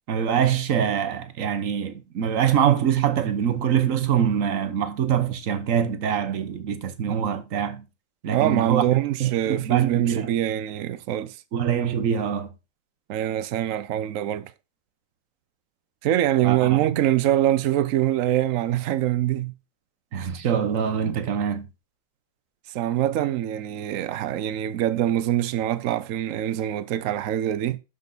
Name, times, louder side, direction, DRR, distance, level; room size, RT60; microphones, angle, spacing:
voice 1, 0.1-7.8 8.2-10.3 11.5-12.5 16.4-16.6 20.1-21.7, right 8 dB, 50° right, 1.1 m, -24 dB
voice 2, 8.3-11.4 13.1-14.5 16.0-19.5 22.7-27.8, right 12 dB, 85° right, 0.7 m, -24 dB
12.0 x 5.4 x 3.9 m
omnidirectional pair, 2.1 m